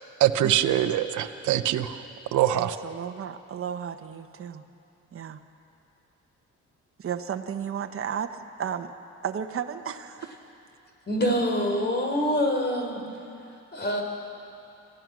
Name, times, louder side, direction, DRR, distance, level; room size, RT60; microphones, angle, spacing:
voice 1, 0.2-2.0 2.3-2.8, right 12 dB, 75° right, 9 dB, 0.9 m, -23 dB
voice 2, 2.5-4.6 5.1-5.4 7.0-8.9 9.2-10.3, right 8 dB, 45° right, 7 dB, 1.1 m, -33 dB
voice 3, 11.1-13.0 13.7-14.0, equal, 35° left, 2 dB, 4.1 m, -25 dB
27.5 x 15.5 x 6.2 m, 2.7 s
cardioid pair, 90°, 30 cm